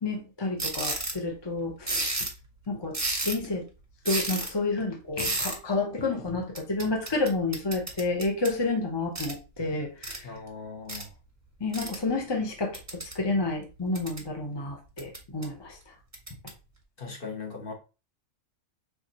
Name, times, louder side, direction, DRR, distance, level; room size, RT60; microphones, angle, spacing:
voice 1, 0.0-2.1 2.7-2.9 3.2-3.7 4.0-10.3 11.6-15.8, left 3 dB, 25° left, 2 dB, 0.6 m, -30 dB
sound 1, 0.6-1.2 1.9-2.4 2.9-3.5 4.1-4.5 5.2-5.6 6.6-8.6 9.2-9.4 10.0-10.2 10.9-11.0 11.7-12.0 12.7-13.2 13.7-14.3 15.0-15.4 16.1-16.5, right 2 dB, 15° right, 0.7 m, -32 dB
voice 2, 10.2-11.1 17.0-17.7, left 4 dB, 45° left, 0 dB, 1.3 m, -39 dB
4.5 x 3.4 x 2.8 m, 0.31 s
omnidirectional pair, 1.4 m